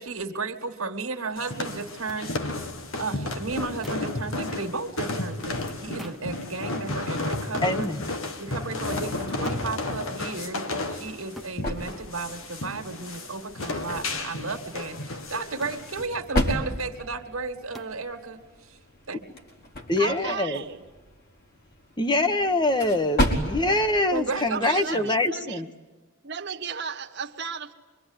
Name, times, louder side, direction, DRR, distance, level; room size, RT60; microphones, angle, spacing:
voice 1, 0.0-2.7 3.0-7.9 8.4-18.8 19.1-19.3 24.1-25.1, right 4 dB, 75° right, 1.9 m, -34 dB
sound 1, 1.4-16.1, left 2 dB, 70° left, 1.8 m, -33 dB
sound 2, 2.1-2.2 3.8-4.2 6.0-6.3 7.6-7.8 9.4-9.7 11.4-11.6 13.6-13.8 15.6-15.9 17.7-18.0, right 1 dB, ahead, 1.1 m, -43 dB
voice 2, 7.6-8.0 19.9-20.6 22.0-25.7, left 2 dB, 20° left, 1.3 m, -24 dB
sound 3, 10.8-25.2, equal, 50° left, 4.3 m, -34 dB
voice 3, 20.0-20.8 24.5-25.7 26.2-27.7, right 6 dB, 55° right, 1.5 m, -34 dB
25.5 x 23.5 x 9.8 m
head